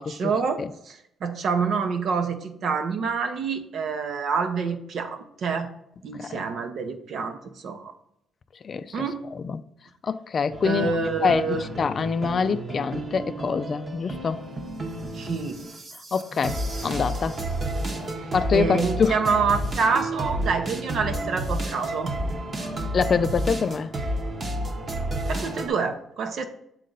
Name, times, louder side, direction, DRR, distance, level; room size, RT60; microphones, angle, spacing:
voice 1, 0.0-0.6 0.9-5.7 6.0-7.4 7.6-7.9 8.9-9.2 10.6-11.7 15.1-15.6 18.1-22.1 25.3-26.5, right 5 dB, 65° right, 0.8 m, -27 dB
voice 2, 8.6-9.0 9.3-9.6 10.0-10.9 11.2-14.4 16.1-17.4 18.3-19.2 22.9-23.9, left 5 dB, 45° left, 0.3 m, -25 dB
sound 1, 10.5-25.7, right 1 dB, 40° right, 1.0 m, -31 dB
7.4 x 4.0 x 3.9 m
cardioid pair, 90°, 0 cm